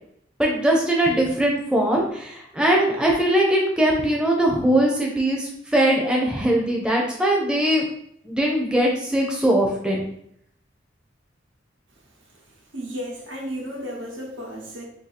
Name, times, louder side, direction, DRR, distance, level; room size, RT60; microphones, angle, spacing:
voice 1, 0.4-7.8 8.2-10.1, right 1 dB, 5° right, -2 dB, 0.5 m, -21 dB
voice 2, 12.7-14.8, equal, 85° right, -1 dB, 1.0 m, -33 dB
2.7 x 2.6 x 4.1 m, 0.71 s
head